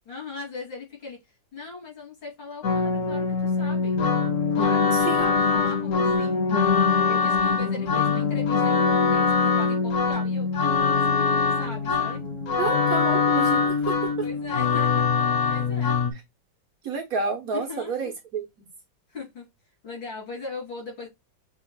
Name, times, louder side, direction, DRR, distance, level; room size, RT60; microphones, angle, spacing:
voice 1, 0.1-1.2 1.5-4.0 4.5-6.4 7.0-12.2 14.2-16.0 17.5-18.1 19.1-19.5 19.8-21.1, left 4 dB, 70° left, 3.5 m, -39 dB
sound 1, 2.6-16.1, left 5 dB, 55° left, 0.9 m, -23 dB
voice 2, 4.9-5.3 12.6-14.3 16.8-18.7, right 5 dB, 55° right, 1.2 m, -30 dB
6.3 x 2.9 x 2.2 m
omnidirectional pair, 2.1 m